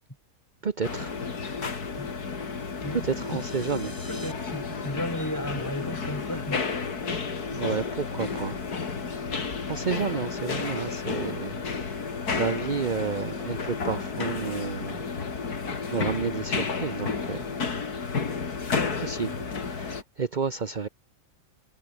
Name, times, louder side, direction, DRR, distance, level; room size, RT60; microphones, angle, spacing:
voice 1, 0.6-1.1 3.0-3.9 7.5-8.5 9.7-11.6 12.4-15.0 15.9-17.4 19.0-19.3 19.7-20.9, right 5 dB, 30° right, 1.0 m, -30 dB
sound 1, 0.8-20.0, left 5 dB, 65° left, 3.0 m, -32 dB
voice 2, 2.8-6.6, equal, 10° left, 5.3 m, -35 dB
sound 2, 2.8-4.3, right 1 dB, 10° right, 5.8 m, -48 dB
omnidirectional pair, 1.7 m